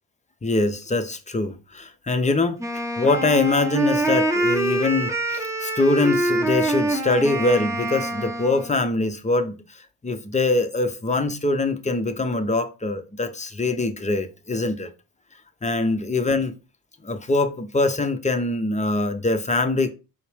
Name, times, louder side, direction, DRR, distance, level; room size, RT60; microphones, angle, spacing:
voice 1, 0.4-14.9 15.6-16.5 17.0-19.9, left 2 dB, 15° left, 0.6 m, -23 dB
Wind instrument woodwind instrument, 2.6-8.8, right 1 dB, 5° right, 0.9 m, -25 dB
4.3 x 2.1 x 3.3 m
hypercardioid pair, 40°, 48 cm